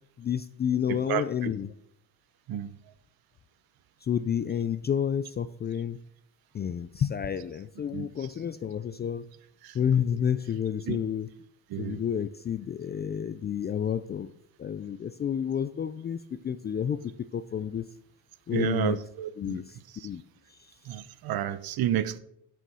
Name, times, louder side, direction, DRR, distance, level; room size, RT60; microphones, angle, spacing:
voice 1, 0.2-1.7 4.0-6.0 6.5-9.3 9.7-11.3 11.8-14.3 14.6-17.9 18.5-19.0 19.4-19.8 20.0-20.2 20.5-20.6, left 8 dB, 25° left, 0.3 m, -30 dB
voice 2, 0.9-1.2 2.5-2.7 7.9-8.1 9.6-9.7 10.9-11.0 11.7-12.0 18.5-19.6 20.9-22.2, right 11 dB, 55° right, 1.0 m, -30 dB
13.0 x 6.9 x 6.1 m
cardioid pair, 135°, 43 cm